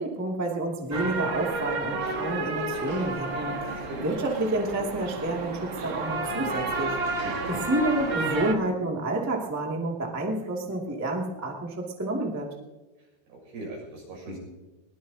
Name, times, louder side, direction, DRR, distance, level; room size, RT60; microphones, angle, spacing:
voice 1, 0.0-7.0 7.5-12.5, right 1 dB, 10° right, -1 dB, 1.1 m, -29 dB
sound 1, 0.9-8.5, right 3 dB, 50° right, 1.4 m, -31 dB
voice 2, 3.7-4.0 7.2-7.6 13.3-14.4, right 1 dB, 85° right, -1 dB, 8.7 m, -39 dB
22.0 x 20.0 x 2.9 m, 1.2 s
omnidirectional pair, 4.7 m